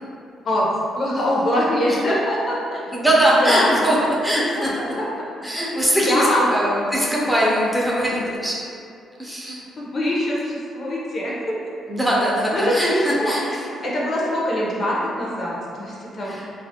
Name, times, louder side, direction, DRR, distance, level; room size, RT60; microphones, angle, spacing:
voice 1, 0.9-2.8 3.4-3.7 4.5-5.1 6.1-6.5 9.8-11.3 12.5-13.3 13.8-16.4, left 1 dB, 50° left, -5 dB, 0.5 m, -23 dB
voice 2, 2.9-4.9 5.4-8.6 9.2-9.6 11.9-13.7 16.2-16.5, equal, 5° right, -5 dB, 0.5 m, -21 dB
2.3 x 2.1 x 2.7 m, 2.5 s
cardioid pair, 90°, 0 cm